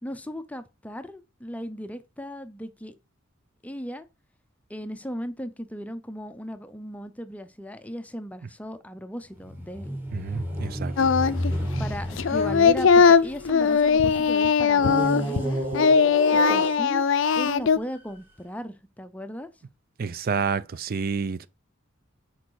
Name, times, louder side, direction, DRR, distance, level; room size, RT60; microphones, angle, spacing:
voice 1, 0.0-3.0 3.6-4.1 4.7-10.0 11.8-15.6 16.3-17.0 17.3-19.5, equal, 5° left, 0.6 m, -37 dB
sound 1, 9.3-14.0 14.8-17.3 18.0-18.1, equal, 10° right, 2.1 m, -31 dB
voice 2, 10.1-11.1 20.0-21.5, right 5 dB, 45° right, 0.4 m, -29 dB
Singing, 11.0-11.5 11.8-15.5 15.7-17.8, left 5 dB, 65° left, 0.4 m, -20 dB
6.4 x 4.7 x 4.7 m
head